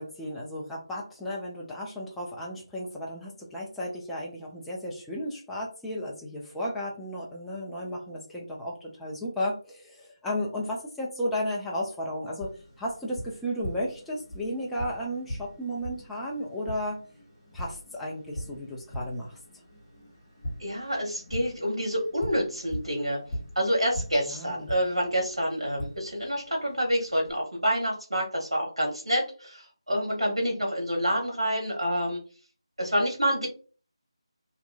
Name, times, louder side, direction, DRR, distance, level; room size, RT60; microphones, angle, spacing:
voice 1, 0.0-12.5 12.8-17.0 17.5-19.4 24.3-24.7, equal, 5° left, -5 dB, 0.4 m, -34 dB
Tap, 12.4-27.3, equal, 20° left, 0.9 m, -41 dB
voice 2, 20.6-23.2 23.5-32.2 32.8-33.5, equal, 80° right, -1 dB, 1.0 m, -28 dB
2.8 x 2.4 x 2.2 m, 0.38 s
figure-of-eight pair, 160°, 3 cm